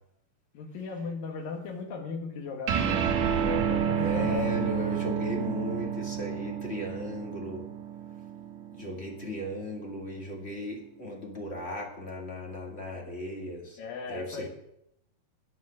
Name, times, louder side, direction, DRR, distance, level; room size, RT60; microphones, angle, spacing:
voice 1, 0.5-3.1 3.4-4.7 13.8-14.5, left 4 dB, 75° left, 2 dB, 3.4 m, -37 dB
sound 1, 2.7-9.4, right 8 dB, 65° right, 2.2 m, -30 dB
voice 2, 4.0-7.6 8.7-13.8 14.1-14.5, left 1 dB, 25° left, -1 dB, 1.4 m, -36 dB
9.5 x 9.3 x 6.3 m, 0.79 s
omnidirectional pair, 4.1 m